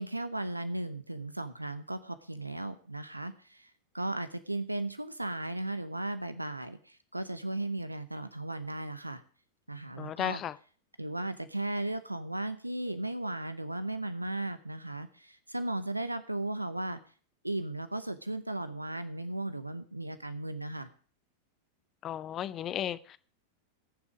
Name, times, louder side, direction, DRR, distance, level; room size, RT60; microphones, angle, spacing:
voice 1, 0.0-9.2 9.7-10.4 11.0-17.0 17.4-20.9, right 1 dB, 85° right, 0.8 m, -36 dB
voice 2, 10.0-10.6 22.0-23.2, left 10 dB, 30° left, 0.7 m, -34 dB
20.0 x 7.2 x 5.0 m
figure-of-eight pair, 90°, 0 cm